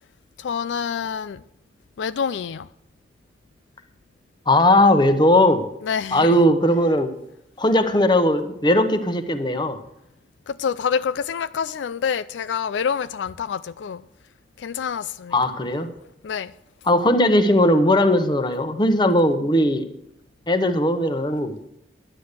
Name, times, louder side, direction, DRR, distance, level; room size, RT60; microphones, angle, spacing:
voice 1, 0.4-1.4 2.0-2.7 5.8-6.4 10.5-14.0 14.6-15.4 16.2-16.5, left 7 dB, 85° left, 0.4 m, -27 dB
voice 2, 4.5-5.7 6.1-7.1 7.6-9.8 15.3-15.9 16.9-19.8 20.5-21.7, left 1 dB, 25° left, 1.0 m, -18 dB
11.5 x 9.7 x 6.7 m
head